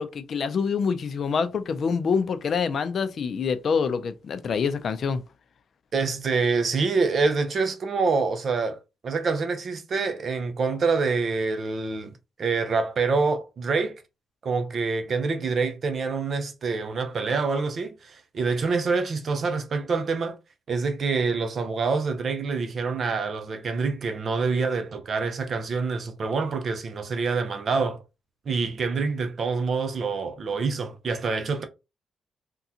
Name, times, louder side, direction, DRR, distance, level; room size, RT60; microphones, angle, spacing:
voice 1, 0.0-5.2, left 5 dB, 55° left, 0.4 m, -26 dB
voice 2, 5.9-12.1 12.4-14.0 14.4-20.4 20.7-28.0 28.5-31.7, right 4 dB, 50° right, 0.6 m, -26 dB
3.7 x 2.3 x 2.8 m
cardioid pair, 95°, 0 cm